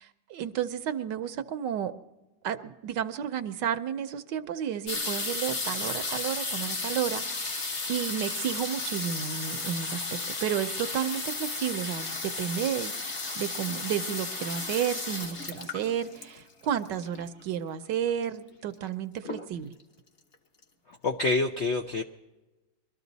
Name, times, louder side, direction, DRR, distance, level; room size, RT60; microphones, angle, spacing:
voice 1, 0.0-1.9 2.4-12.9 13.4-19.7, right 9 dB, 70° right, 10 dB, 1.3 m, -32 dB
sound 1, 4.9-17.4 18.2-18.3 18.5-18.9 19.2-19.8 20.3-20.4 20.6-20.7, left 3 dB, 40° left, 1.4 m, -34 dB
voice 2, 21.0-22.0, left 3 dB, 65° left, 4 dB, 0.6 m, -26 dB
23.0 x 13.0 x 4.0 m, 1.0 s
omnidirectional pair, 2.1 m